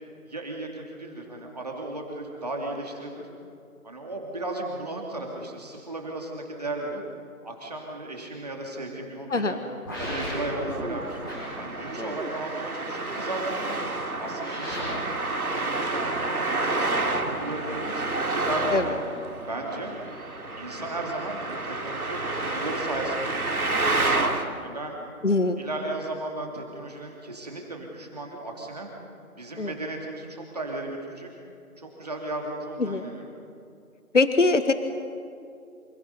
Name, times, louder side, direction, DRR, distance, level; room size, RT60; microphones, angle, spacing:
voice 1, 0.2-3.3 3.8-7.0 7.4-9.6 10.0-11.2 11.6-13.8 14.2-15.0 15.5-19.0 19.4-19.9 20.6-23.8 24.6-25.3 25.6-28.9 29.3-31.3 31.8-33.3, right 2 dB, 25° right, 0 dB, 2.7 m, -35 dB
sound 1, 9.9-10.7 11.2-12.3 14.4-14.8, equal, 15° left, 5.7 m, -35 dB
Traffic noise roadway noise, 10.0-24.4, right 2 dB, 75° right, 2.7 m, -29 dB
voice 2, 25.2-25.6 29.6-29.7 32.8-33.1 34.1-34.7, left 3 dB, 55° left, 10 dB, 1.2 m, -22 dB
28.5 x 27.5 x 5.5 m, 2.5 s
figure-of-eight pair, 175°, 44 cm